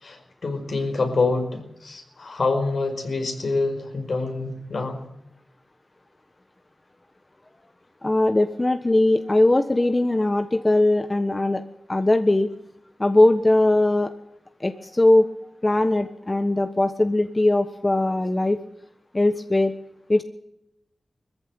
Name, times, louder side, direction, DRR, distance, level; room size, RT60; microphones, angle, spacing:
voice 1, 0.0-5.0, left 3 dB, 70° left, 4 dB, 5.1 m, -26 dB
voice 2, 8.0-11.6 11.9-12.5 13.0-14.1 14.6-15.2 15.6-18.6 19.1-19.7 20.1-20.2, left 2 dB, 30° left, 9 dB, 1.3 m, -20 dB
20.5 x 15.0 x 9.1 m, 0.82 s
cardioid pair, 45°, 0 cm